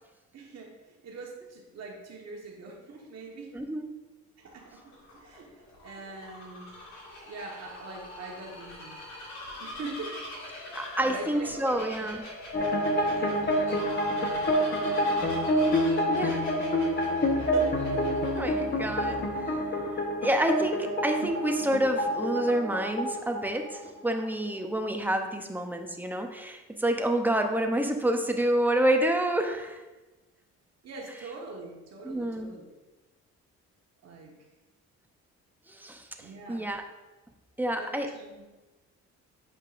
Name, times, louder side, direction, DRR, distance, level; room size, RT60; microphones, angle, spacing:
voice 1, 0.3-3.6 4.4-6.7 7.3-9.0 9.6-10.2 11.0-12.0 12.9-13.8 14.0-15.3 17.0-17.2 17.5-17.8 30.8-32.6 34.0-34.3 36.2-36.6 37.8-38.4, right 3 dB, 60° right, 0 dB, 1.3 m, -43 dB
voice 2, 3.5-3.9 10.7-12.2 16.1-16.4 18.4-19.5 20.2-29.8 32.0-32.5 35.7-36.8 37.6-38.1, right 1 dB, 5° right, 4 dB, 0.7 m, -28 dB
Bird vocalization bird call bird song, 4.5-19.5, left 1 dB, 65° left, 2.0 m, -43 dB
sound 1, 12.5-24.2, equal, 35° left, 1.0 m, -27 dB
7.8 x 5.3 x 2.5 m, 1.1 s
cardioid pair, 90°, 30 cm